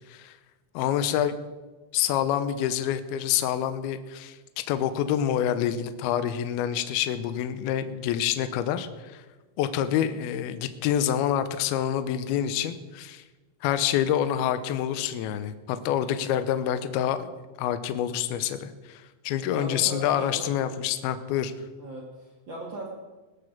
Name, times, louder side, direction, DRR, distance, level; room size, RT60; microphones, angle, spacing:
voice 1, 0.7-1.4 1.9-4.4 4.7-9.2 9.6-13.2 13.6-17.3 17.6-21.5, left 10 dB, 85° left, 11 dB, 2.2 m, -27 dB
voice 2, 19.5-20.5 21.8-22.9, right 1 dB, 75° right, -2 dB, 1.0 m, -38 dB
19.5 x 6.7 x 7.3 m, 1.2 s
omnidirectional pair, 5.4 m